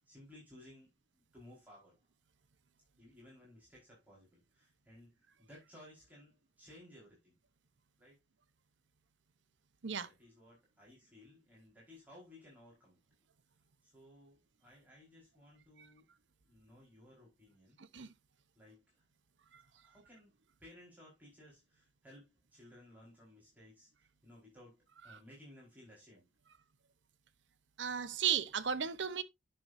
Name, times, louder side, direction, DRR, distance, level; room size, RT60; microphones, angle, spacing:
voice 1, 0.0-2.0 3.0-7.4 8.0-8.2 10.0-13.0 13.8-16.1 16.5-17.8 18.5-19.0 19.6-20.3 20.6-26.3, left 1 dB, 10° right, 4.6 m, -59 dB
voice 2, 27.8-29.2, right 8 dB, 85° right, 0.9 m, -34 dB
10.5 x 7.0 x 2.6 m
head